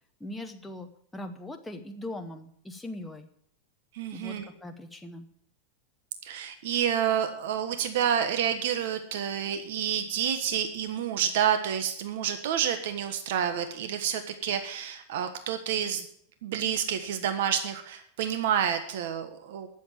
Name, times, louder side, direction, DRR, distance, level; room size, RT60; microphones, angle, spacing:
voice 1, 0.2-3.3 4.1-5.3, left 1 dB, 5° left, 4 dB, 0.8 m, -40 dB
voice 2, 3.9-4.5 6.2-16.0 16.4-19.7, right 9 dB, 70° right, 8 dB, 1.3 m, -29 dB
11.0 x 7.2 x 8.5 m, 0.67 s
supercardioid pair, 160°, 0 cm